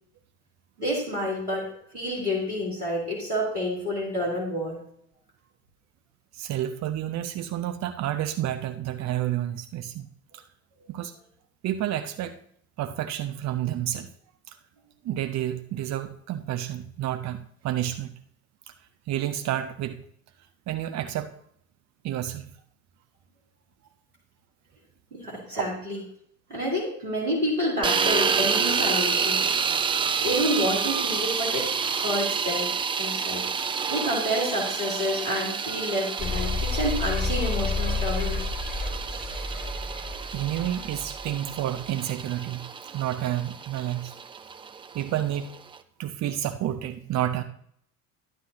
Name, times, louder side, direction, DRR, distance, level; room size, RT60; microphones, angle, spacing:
voice 1, 0.8-1.7 1.9-4.8 25.1-26.0 26.5-29.4 30.2-32.7 33.0-38.4, equal, 90° right, -4 dB, 2.9 m, -29 dB
voice 2, 6.3-10.1 10.3-10.4 10.9-11.1 11.6-12.4 12.8-14.1 14.5-14.6 15.0-18.1 18.7-18.8 19.1-20.0 20.7-21.3 22.0-22.5 25.5-25.7 40.3-42.7 42.9-44.1 44.9-45.6 46.0-47.4, right 12 dB, 40° right, 9 dB, 0.7 m, -30 dB
sound 1, 27.8-45.8, right 6 dB, 15° right, 0.3 m, -29 dB
sound 2, 36.2-41.3, left 4 dB, 20° left, 2.2 m, -30 dB
11.5 x 9.9 x 2.8 m, 0.67 s
figure-of-eight pair, 60°, 44 cm